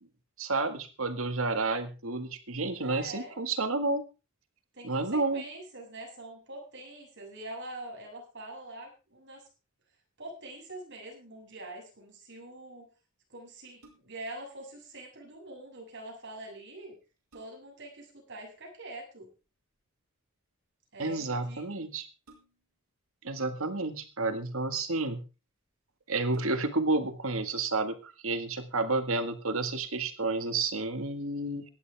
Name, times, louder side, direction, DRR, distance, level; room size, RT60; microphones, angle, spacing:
voice 1, 0.4-4.0 4.8-5.4 21.0-22.1 23.2-25.2 26.1-31.6, right 3 dB, 70° right, 8 dB, 1.9 m, -30 dB
voice 2, 2.8-3.4 4.7-9.5 10.2-12.9 13.3-17.0 17.3-19.3 20.9-21.9, right 1 dB, 55° right, 1 dB, 7.6 m, -44 dB
sound 1, 13.6-14.4 16.4-16.5 16.9-17.9 19.4-19.8 22.2-22.9 23.8-24.5 25.3-25.4 25.7-25.8 26.2-26.9 27.4-27.5, right 1 dB, 85° right, 5.7 m, -60 dB
18.0 x 12.5 x 3.5 m, 0.33 s
head